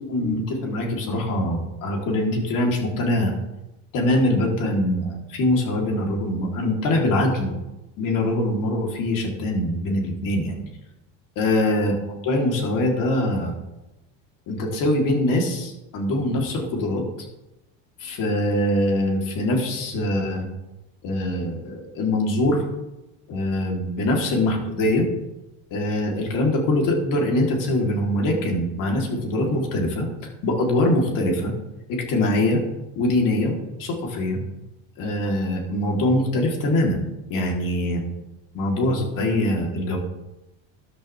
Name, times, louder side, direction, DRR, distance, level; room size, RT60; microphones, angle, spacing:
voice 1, 0.1-3.3 3.9-7.6 8.0-10.6 11.3-11.9 12.2-13.5 14.5-17.0 18.0-20.4 21.0-22.6 23.3-25.1 25.7-30.1 30.4-31.5 31.9-32.6 33.0-34.4 35.0-37.0 37.3-38.0 38.5-40.0, left 1 dB, 55° left, 0 dB, 3.4 m, -23 dB
13.0 x 11.5 x 3.4 m, 0.98 s
cardioid pair, 135°, 37 cm